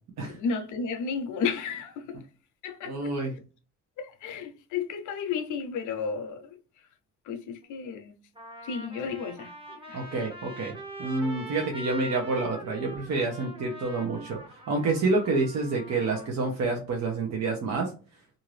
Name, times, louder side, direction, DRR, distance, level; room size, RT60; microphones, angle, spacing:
voice 1, 0.2-2.2 2.6-3.1 4.0-6.6 7.3-8.2 8.6-10.0, left 5 dB, 75° left, 0.6 m, -33 dB
voice 2, 2.9-3.3 9.9-10.7 11.0-14.4 14.7-17.9, right 3 dB, 65° right, 0.8 m, -28 dB
Trumpet, 7.6-7.7 8.3-16.3, right 1 dB, 20° right, 0.8 m, -43 dB
2.7 x 2.5 x 3.1 m
cardioid pair, 90°, 30 cm